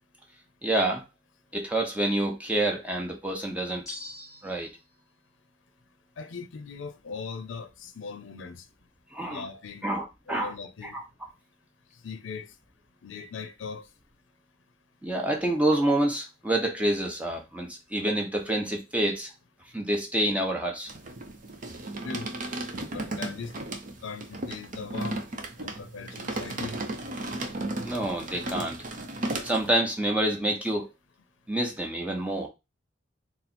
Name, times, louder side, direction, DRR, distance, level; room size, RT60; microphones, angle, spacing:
voice 1, 0.6-1.0 1.5-3.9 4.4-4.7 9.1-9.4 9.8-10.5 10.8-11.0 15.0-19.3 19.7-20.9 27.8-28.8 29.4-30.9 31.5-32.5, right 1 dB, 5° right, 0.9 m, -27 dB
sound 1, 3.9-4.8, left 1 dB, 15° left, 1.4 m, -42 dB
voice 2, 6.2-8.6 9.3-9.8 10.3-11.0 12.0-12.5 13.0-13.9 22.0-22.3 22.9-23.5 24.0-25.2 25.6-26.8, left 5 dB, 80° left, 0.5 m, -39 dB
sound 2, 20.9-29.7, right 2 dB, 45° right, 0.6 m, -35 dB
4.2 x 2.0 x 4.2 m
head